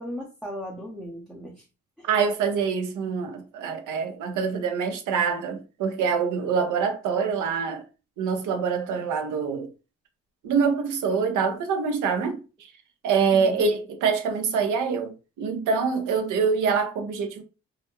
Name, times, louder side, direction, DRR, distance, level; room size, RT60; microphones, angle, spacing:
voice 1, 0.0-1.7 2.0-2.1 13.3-13.6, equal, ahead, 0.5 m, -37 dB
voice 2, 2.0-7.8 8.2-9.7 10.4-12.7 13.0-17.4, right 5 dB, 85° right, 0.7 m, -25 dB
2.4 x 2.2 x 2.8 m
cardioid pair, 90°, 30 cm